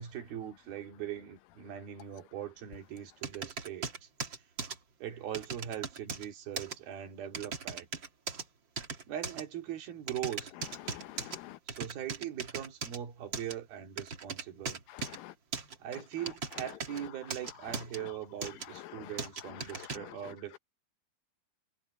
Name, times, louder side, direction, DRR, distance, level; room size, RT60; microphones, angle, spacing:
voice 1, 0.0-4.1 5.0-7.9 9.1-10.5 11.7-14.8 15.8-20.6, right 10 dB, 75° right, 4.1 m, -41 dB
sound 1, 3.2-4.8 5.3-6.3 6.6-6.8 7.3-8.4 8.8-9.4 10.1-11.4 11.7-13.0 13.3-13.5 14.0-15.2 15.5-17.0 17.3-18.0 18.4-18.7 19.2-20.0, right 5 dB, 40° right, 2.1 m, -38 dB
voice 2, 10.9-11.6 14.9-15.3 18.9-19.1 19.7-20.2, left 16 dB, 80° left, 2.3 m, -47 dB
omnidirectional pair, 4.4 m